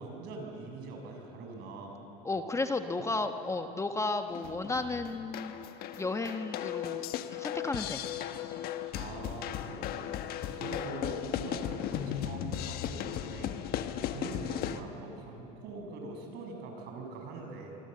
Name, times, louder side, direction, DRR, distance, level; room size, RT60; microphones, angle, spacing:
voice 1, 0.0-2.0 8.9-10.0 10.5-13.5 14.0-17.7, right 3 dB, 60° right, 2 dB, 6.7 m, -43 dB
voice 2, 2.2-5.5 6.0-7.0 7.3-8.0, left 3 dB, 15° left, 7 dB, 1.3 m, -33 dB
sound 1, 4.3-14.8, left 11 dB, 55° left, 1.3 m, -36 dB
25.5 x 25.0 x 7.9 m, 3.0 s
supercardioid pair, 95°, 19 cm